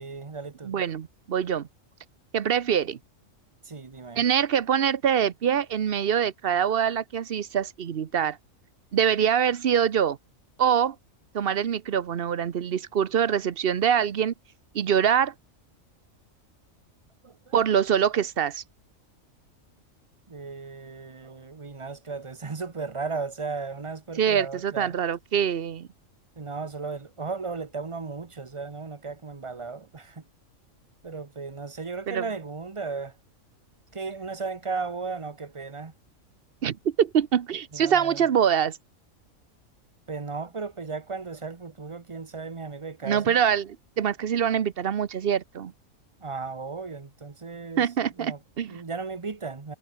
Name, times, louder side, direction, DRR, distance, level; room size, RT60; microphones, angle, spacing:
voice 1, 0.0-0.8 3.6-4.3 17.2-17.6 20.3-25.0 26.3-30.3 31.0-33.2 33.9-35.9 37.7-38.3 40.1-43.4 46.2-49.7, right 4 dB, 25° right, 1.0 m, -36 dB
voice 2, 0.6-1.7 2.3-3.0 4.2-8.4 8.9-10.2 10.6-11.0 11.3-14.3 14.7-15.3 17.5-18.6 24.2-25.9 32.1-32.2 36.6-38.8 43.0-43.7 44.0-45.7 47.8-48.8, right 8 dB, 50° right, 0.9 m, -24 dB
omnidirectional pair, 1.4 m